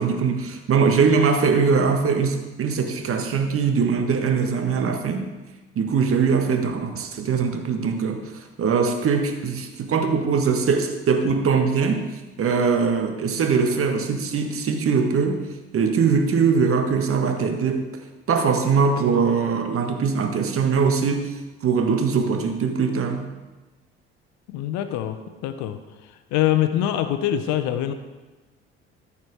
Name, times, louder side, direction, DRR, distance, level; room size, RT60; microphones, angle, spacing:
voice 1, 0.0-5.3 5.7-12.1 12.4-15.5 15.7-17.9 18.3-21.3 21.6-23.3, right 5 dB, 45° right, 5 dB, 1.6 m, -21 dB
voice 2, 24.5-27.9, left 11 dB, 65° left, 10 dB, 0.9 m, -24 dB
14.0 x 5.9 x 4.8 m, 1.2 s
hypercardioid pair, 55°, 31 cm